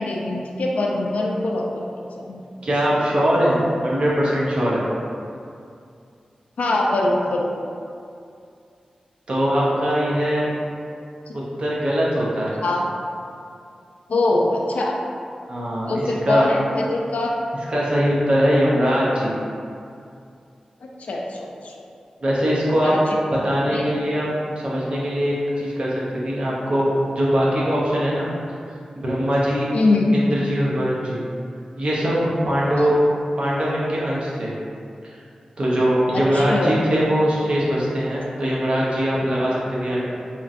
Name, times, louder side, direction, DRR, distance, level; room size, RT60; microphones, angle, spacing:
voice 1, 0.0-1.8 2.2-2.4 6.6-7.5 11.3-11.4 12.6-12.8 14.1-15.0 15.9-17.3 20.8-21.8 22.8-23.8 29.7-30.1 36.1-36.7, left 2 dB, 80° left, -1 dB, 0.3 m, -23 dB
voice 2, 2.6-4.8 9.3-10.5 11.3-12.5 15.5-16.5 17.7-19.3 22.2-22.9 23.3-24.3 24.6-26.9 27.2-28.3 29.0-29.7 30.1-31.2 31.8-32.9 33.4-34.5 35.6-40.0, equal, 55° right, -6 dB, 0.6 m, -21 dB
2.9 x 2.5 x 2.4 m, 2.5 s
wide cardioid pair, 100°, 2 cm